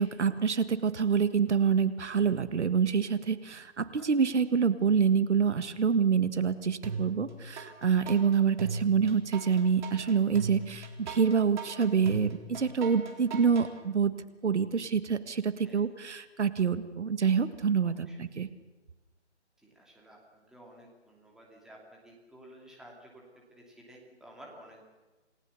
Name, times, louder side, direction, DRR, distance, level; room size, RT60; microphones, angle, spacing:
voice 1, 0.0-14.1 14.4-18.5, right 6 dB, 70° right, 12 dB, 1.7 m, -26 dB
sound 1, 6.8-7.7 8.1-13.7, right 4 dB, 40° right, 3.9 m, -38 dB
voice 2, 17.8-18.2 19.6-23.2 23.5-24.9, right 1 dB, ahead, -2 dB, 2.7 m, -53 dB
28.5 x 19.0 x 7.0 m, 1.2 s
hypercardioid pair, 160°, 36 cm